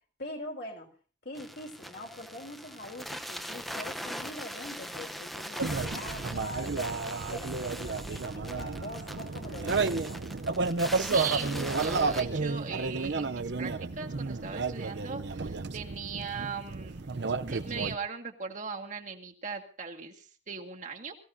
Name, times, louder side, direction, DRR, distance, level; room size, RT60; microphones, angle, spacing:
voice 1, 0.2-0.9 1.2-7.0 7.3-10.2, left 1 dB, 55° left, 2 dB, 3.5 m, -43 dB
sound 1, 1.3-12.2, equal, ahead, 0.8 m, -41 dB
sound 2, 5.6-18.0, right 4 dB, 60° right, 0.7 m, -32 dB
voice 2, 10.9-17.2 17.4-21.2, right 6 dB, 40° right, 1 dB, 1.9 m, -39 dB
22.5 x 15.5 x 2.7 m, 0.38 s
head